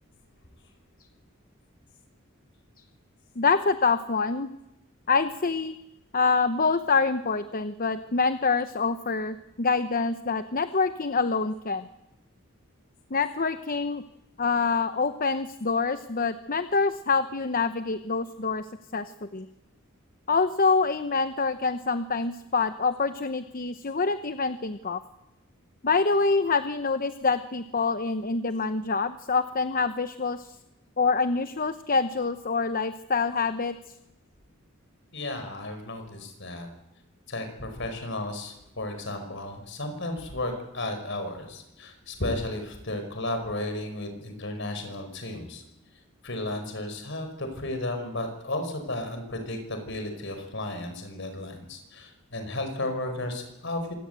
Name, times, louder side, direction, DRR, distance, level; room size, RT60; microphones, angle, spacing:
voice 1, 3.4-4.5 5.1-5.7 6.1-11.9 13.1-14.0 14.4-18.6 18.9-19.5 20.3-25.0 25.8-30.6 31.0-33.7, left 4 dB, 45° left, 11 dB, 0.9 m, -26 dB
voice 2, 35.1-36.7 37.3-45.6 46.2-53.9, left 1 dB, 60° left, 6 dB, 5.4 m, -34 dB
25.5 x 18.5 x 8.2 m, 0.90 s
head